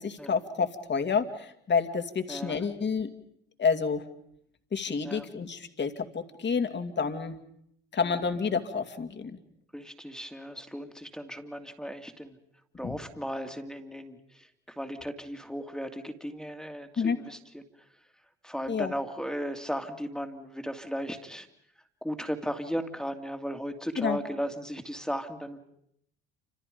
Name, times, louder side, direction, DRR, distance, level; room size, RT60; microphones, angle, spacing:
voice 1, 0.0-3.1 3.6-4.1 4.7-7.4 7.9-9.4 12.8-13.0 17.0-17.2 18.7-18.9 23.9-24.2, left 5 dB, 35° left, 7 dB, 2.6 m, -29 dB
voice 2, 9.7-12.4 12.7-14.5 14.8-17.6 18.4-21.5 22.0-25.6, equal, ahead, 6 dB, 2.6 m, -36 dB
28.5 x 27.0 x 5.3 m, 0.73 s
hypercardioid pair, 65°, 30 cm